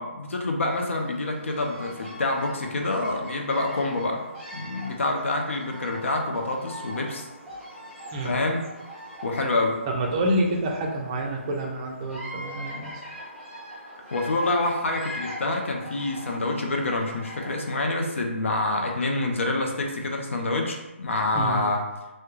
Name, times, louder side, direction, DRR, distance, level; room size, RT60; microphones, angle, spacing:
voice 1, 0.0-4.3 4.5-7.3 8.2-8.6 9.2-9.8 14.1-21.8, left 2 dB, 70° left, 2 dB, 0.5 m, -27 dB
Bird vocalization bird call bird song, 0.7-18.0, equal, 10° left, 0.7 m, -42 dB
voice 2, 9.9-13.0 21.3-21.6, right 1 dB, 25° right, -1 dB, 0.4 m, -28 dB
2.2 x 2.1 x 3.0 m, 1.0 s
hypercardioid pair, 155°, 7 cm